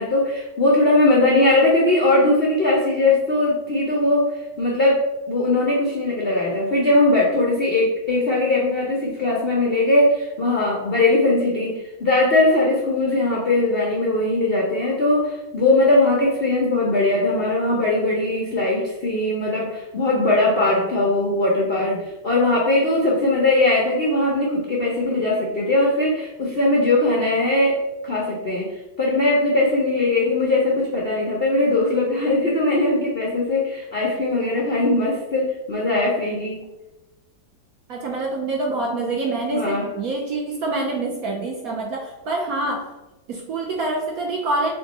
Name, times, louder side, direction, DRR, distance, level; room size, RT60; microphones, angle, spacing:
voice 1, 0.0-27.8 28.0-28.7 29.0-36.6 39.5-39.9, left 2 dB, 60° left, -3 dB, 0.6 m, -20 dB
voice 2, 37.9-43.0 43.3-44.7, right 2 dB, 65° right, -1 dB, 0.9 m, -26 dB
3.6 x 3.5 x 4.0 m, 1.0 s
omnidirectional pair, 2.1 m